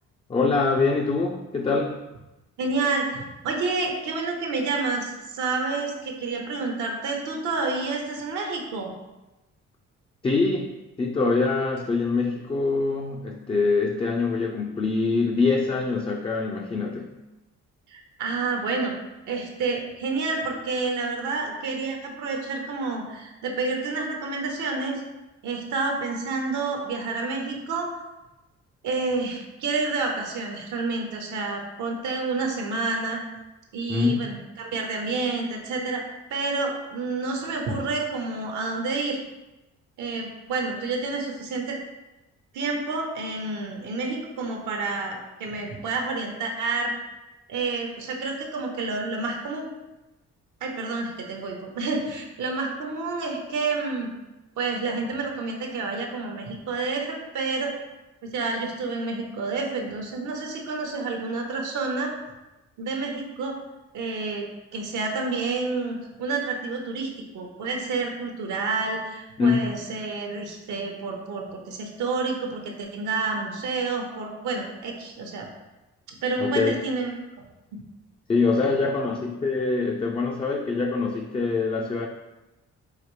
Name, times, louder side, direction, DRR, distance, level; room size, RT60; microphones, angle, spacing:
voice 1, 0.3-2.1 10.2-10.7 11.0-17.1 33.9-34.2 69.4-69.7 76.4-76.8 78.3-82.1, left 4 dB, 20° left, 1 dB, 0.3 m, -24 dB
voice 2, 2.6-8.9 17.9-19.0 19.3-25.0 25.4-27.9 28.8-33.2 33.7-36.0 36.3-39.2 40.0-41.8 42.5-46.9 47.5-49.7 50.6-54.1 54.6-57.7 58.2-62.1 62.8-63.6 63.9-67.1 67.3-75.5 76.2-77.1 77.7-77.8, right 3 dB, 75° right, 2 dB, 0.8 m, -29 dB
4.9 x 2.7 x 3.0 m, 1.0 s
cardioid pair, 90°, 30 cm